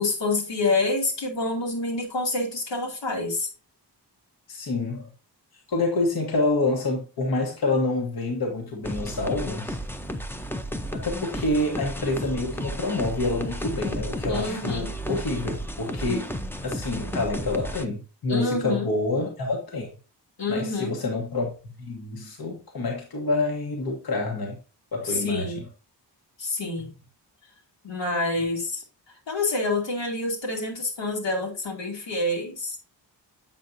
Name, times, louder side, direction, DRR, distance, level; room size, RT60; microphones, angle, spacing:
voice 1, 0.0-3.5 14.3-14.9 18.3-18.9 20.4-21.0 25.0-25.6 26.4-26.9 27.8-32.8, left 2 dB, 85° left, 2.4 m, -27 dB
voice 2, 4.5-5.1 5.5-9.8 10.9-16.3 16.6-19.9 20.5-21.5 21.8-24.6 24.9-25.5, left 2 dB, 60° left, 1.2 m, -27 dB
sound 1, 8.8-17.9, equal, 5° left, 0.5 m, -33 dB
7.3 x 5.7 x 2.6 m
wide cardioid pair, 140°, 42 cm